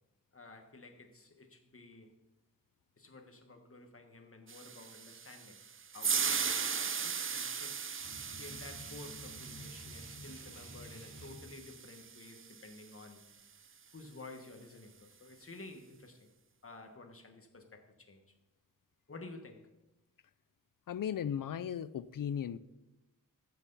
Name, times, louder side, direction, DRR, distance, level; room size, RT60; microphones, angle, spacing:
voice 1, 0.3-2.1 3.0-5.6 5.9-7.8 8.3-13.3 13.9-16.3 16.6-18.4 19.1-19.7, left 3 dB, 40° left, 4 dB, 1.5 m, -52 dB
sound 1, 4.5-12.8, right 6 dB, 40° right, 0.5 m, -38 dB
sound 2, 8.0-11.5, equal, 80° right, 3.6 m, -51 dB
voice 2, 20.9-22.6, left 9 dB, 70° left, 17 dB, 0.5 m, -36 dB
14.5 x 8.0 x 4.1 m, 0.97 s
wide cardioid pair, 100°, 34 cm